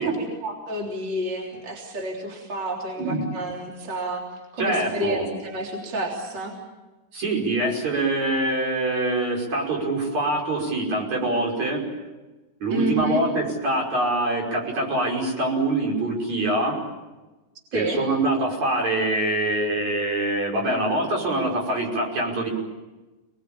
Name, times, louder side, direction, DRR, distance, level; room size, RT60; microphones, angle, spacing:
voice 1, 0.0-4.2 4.5-6.5 12.7-13.2 17.7-18.0, right 1 dB, 30° right, -1 dB, 3.9 m, -30 dB
voice 2, 4.6-5.3 7.1-11.9 12.6-16.8 17.7-22.5, right 2 dB, 50° right, 0 dB, 6.7 m, -24 dB
29.0 x 21.0 x 8.8 m, 1.2 s
omnidirectional pair, 4.3 m